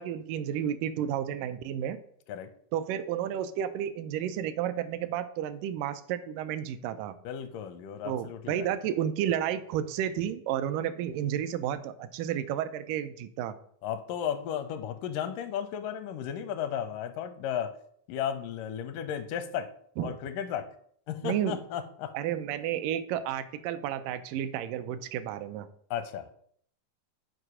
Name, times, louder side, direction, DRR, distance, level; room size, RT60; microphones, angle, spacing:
voice 1, 0.0-2.0 2.7-7.2 8.0-13.6 20.0-20.2 21.2-21.6 22.1-25.7, right 10 dB, 85° right, 12 dB, 2.2 m, -31 dB
voice 2, 7.2-8.7 13.8-17.7 18.1-19.7 20.0-20.7 21.1-22.1 25.9-26.3, left 9 dB, 85° left, 11 dB, 2.3 m, -34 dB
7.9 x 4.8 x 4.9 m, 0.63 s
omnidirectional pair, 3.7 m